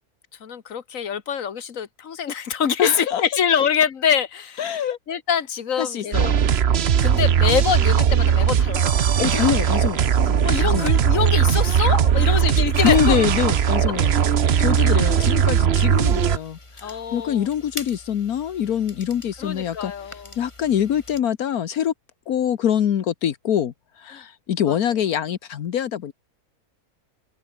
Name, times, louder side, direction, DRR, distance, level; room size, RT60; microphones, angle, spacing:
voice 1, 0.4-4.6 5.1-6.3 7.0-9.1 10.4-13.2 14.8-15.1 16.8-17.5 19.4-20.3 24.1-24.2 24.7-24.8, left 7 dB, 65° left, 1.8 m, -25 dB
voice 2, 2.8-3.2 4.6-5.0 5.8-6.3 9.2-10.9 12.1-12.6 12.8-14.1 14.6-21.9 22.3-26.1, left 9 dB, 80° left, 1.5 m, -24 dB
sound 1, 6.1-16.4, right 8 dB, 50° right, 1.0 m, -19 dB
sound 2, 15.7-21.2, left 2 dB, 20° left, 2.2 m, -42 dB
omnidirectional pair, 1.6 m